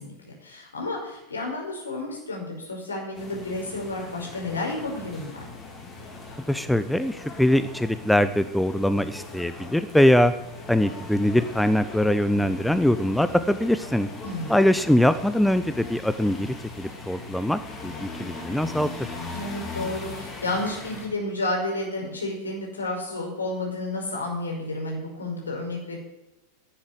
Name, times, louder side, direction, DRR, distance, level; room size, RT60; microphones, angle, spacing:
voice 1, 0.0-5.4 14.2-14.6 19.3-26.0, left 2 dB, 75° left, 0 dB, 5.2 m, -31 dB
sound 1, 3.1-21.1, left 3 dB, 25° left, 3.7 m, -40 dB
voice 2, 6.5-10.3 10.7-14.1 14.5-19.1, left 1 dB, ahead, 12 dB, 0.7 m, -22 dB
11.5 x 10.0 x 9.6 m, 0.93 s
figure-of-eight pair, 90°, 0 cm